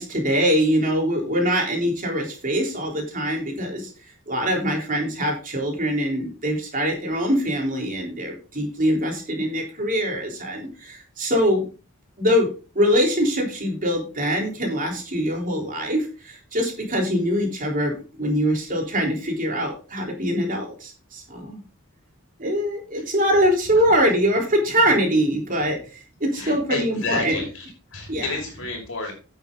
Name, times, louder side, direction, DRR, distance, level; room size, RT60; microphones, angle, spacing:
voice 1, 0.0-3.9 4.3-11.6 12.2-12.5 12.8-17.9 18.2-21.6 22.4-25.8 26.2-27.4 28.1-28.3, equal, 40° right, 1 dB, 3.7 m, -23 dB
voice 2, 26.3-29.1, left 3 dB, 65° left, 2 dB, 5.4 m, -30 dB
10.0 x 8.7 x 3.9 m, 0.35 s
head